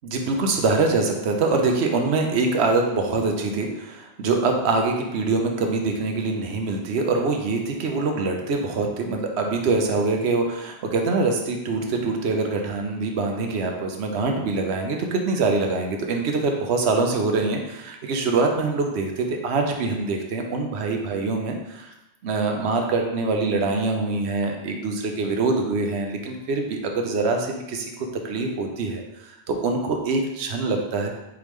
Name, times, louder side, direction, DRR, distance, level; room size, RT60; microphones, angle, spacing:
voice 1, 0.0-21.9 22.2-31.1, right 3 dB, 75° right, 2 dB, 0.9 m, -24 dB
4.8 x 3.5 x 3.1 m, 0.97 s
omnidirectional pair, 1.1 m